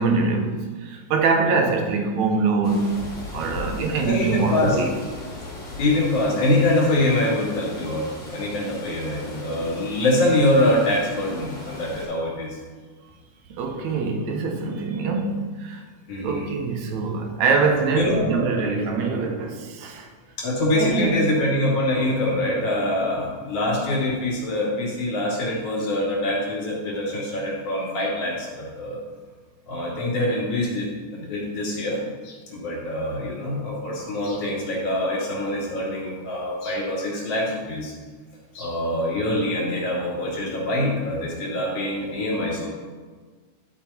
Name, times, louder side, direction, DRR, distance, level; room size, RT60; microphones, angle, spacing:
voice 1, 0.0-3.1 3.3-4.9 13.5-15.8 16.2-20.1 20.8-21.3, right 4 dB, 75° right, 4 dB, 2.3 m, -24 dB
sound 1, 2.6-12.1, left 2 dB, 20° left, 3.0 m, -38 dB
voice 2, 4.0-4.8 5.8-12.6 16.1-16.5 18.0-18.3 20.4-29.0 29.7-32.0 32.2-37.9 38.5-42.7, left 1 dB, 60° left, -3 dB, 3.6 m, -24 dB
11.5 x 5.8 x 4.3 m, 1.4 s
omnidirectional pair, 3.3 m